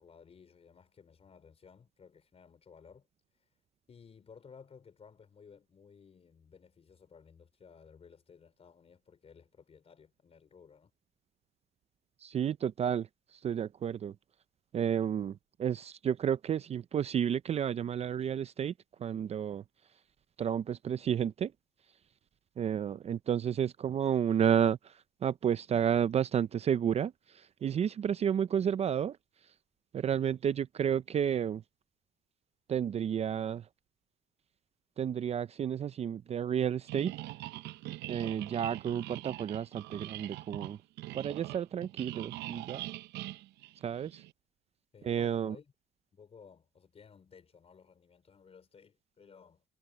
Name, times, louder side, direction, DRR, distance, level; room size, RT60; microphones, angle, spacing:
voice 1, 0.0-3.1 3.4-3.5 3.9-10.9 44.9-45.7 46.1-49.6, left 6 dB, 35° left, 5.2 m, -57 dB
voice 2, 12.2-13.1 13.4-14.1 14.7-18.7 19.0-19.6 20.4-21.5 22.6-24.8 25.2-27.1 27.6-29.2 29.9-31.6 32.7-33.6 35.0-37.1 38.1-40.8 41.1-42.8 43.8-44.2 45.0-45.5, right 8 dB, 40° right, 0.5 m, -31 dB
sound 1, 36.9-44.3, right 17 dB, 85° right, 0.7 m, -43 dB
cardioid pair, 110°, 17 cm